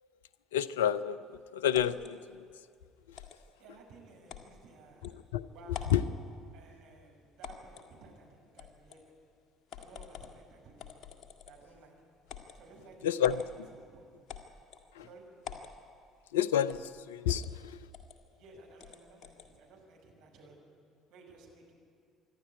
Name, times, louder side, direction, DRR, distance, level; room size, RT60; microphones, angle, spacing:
voice 1, 0.5-2.4 5.1-5.5 5.9-6.0 13.0-13.7 14.9-15.1 16.3-17.8, left 10 dB, 70° left, 17 dB, 0.5 m, -30 dB
sound 1, 1.7-2.1 3.1-3.4 4.3-4.5 5.0-5.1 5.7-6.0 7.4-7.9 8.6-9.0 9.7-10.4 10.8-11.7 12.3-12.6 13.2-13.5 14.3-14.9 15.4-15.7 16.7-16.9 17.3-17.5 17.9-18.2 18.8-19.5, left 7 dB, 45° left, 2.0 m, -46 dB
voice 2, 3.6-5.8 6.5-9.0 9.8-10.9 11.5-11.9 12.5-13.4 13.7-14.1 15.0-15.3 18.3-20.6 21.1-21.7, right 3 dB, 60° right, -1 dB, 5.6 m, -56 dB
26.5 x 11.5 x 9.7 m, 2.2 s
figure-of-eight pair, 55°, 0 cm